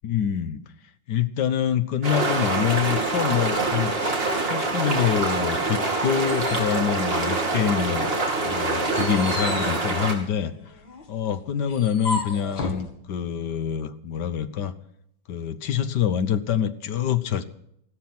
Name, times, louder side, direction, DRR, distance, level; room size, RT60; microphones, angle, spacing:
voice 1, 0.0-0.6 1.1-8.1 8.4-10.5 11.1-14.7 15.3-17.4, left 9 dB, 65° left, 12 dB, 1.4 m, -26 dB
sound 1, 2.0-10.1, right 3 dB, 30° right, 2.9 m, -25 dB
sound 2, 5.8-7.8 8.2-12.9, left 3 dB, 90° left, 2.9 m, -35 dB
15.0 x 13.0 x 6.0 m, 0.73 s
omnidirectional pair, 2.1 m